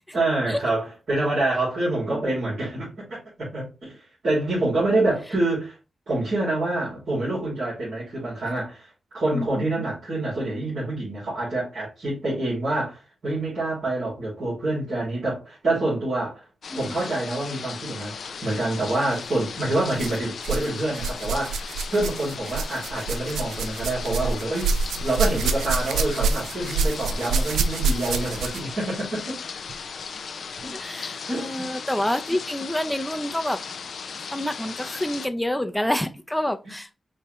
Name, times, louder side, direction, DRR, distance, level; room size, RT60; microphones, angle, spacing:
voice 1, 0.1-5.8 6.1-16.4 16.7-24.8 25.0-29.4 30.6-30.7 31.2-31.7 36.6-36.7, right 2 dB, 65° right, 2.7 m, -27 dB
sound 1, 16.6-35.3, left 6 dB, 75° left, 0.5 m, -37 dB
sound 2, 19.0-19.2 19.9-20.7 20.9-28.7 29.7-29.8 30.6-30.7, right 4 dB, 90° right, 0.3 m, -27 dB
voice 2, 30.7-33.6 34.3-37.0, left 1 dB, 5° left, 0.6 m, -27 dB
5.3 x 2.7 x 3.1 m
cardioid pair, 45°, 0 cm